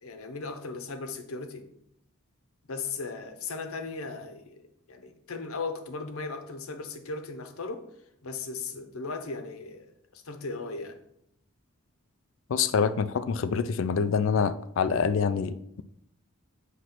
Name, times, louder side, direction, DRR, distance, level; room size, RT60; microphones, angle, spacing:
voice 1, 0.0-1.7 2.6-4.6 4.9-7.9 8.2-11.0, left 3 dB, 80° left, 0.9 m, -37 dB
voice 2, 12.5-15.8, left 6 dB, 60° left, 0.4 m, -26 dB
7.6 x 3.1 x 5.8 m
head